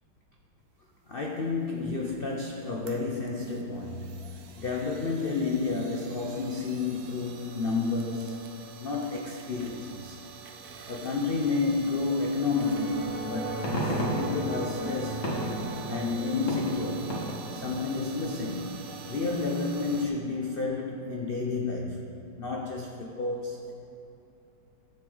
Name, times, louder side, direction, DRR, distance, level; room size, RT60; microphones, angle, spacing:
voice 1, 1.1-8.5 8.8-10.2 10.9-15.3 15.9-17.1 17.5-22.0 22.4-23.7, left 3 dB, 85° left, 0 dB, 0.5 m, -31 dB
sound 1, 1.2-20.1, right 6 dB, 60° right, 1.2 m, -47 dB
sound 2, 12.5-21.1, right 2 dB, 40° right, 0.9 m, -38 dB
sound 3, 13.3-17.8, equal, 40° left, 2.0 m, -34 dB
13.5 x 7.5 x 4.0 m, 2.9 s
omnidirectional pair, 2.1 m